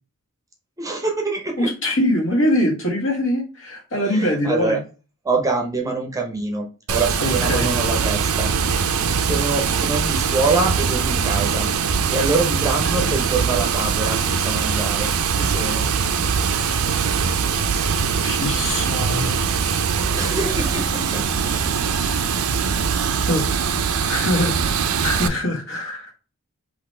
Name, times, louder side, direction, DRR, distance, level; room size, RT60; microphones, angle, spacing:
voice 1, 0.8-1.7 4.1-4.8 5.2-8.9 9.2-11.7 12.1-15.9 20.1-21.3 21.5-21.9, right 3 dB, 15° right, 2 dB, 0.7 m, -25 dB
voice 2, 1.6-4.8 7.2-7.7 13.0-13.1 18.2-19.5 22.0-22.1 23.3-23.5 23.9-24.5 25.0-26.1, left 1 dB, 60° left, 0 dB, 1.7 m, -23 dB
Water, 6.9-25.3, right 6 dB, 75° right, 0.6 m, -22 dB
4.1 x 3.0 x 4.3 m, 0.34 s
head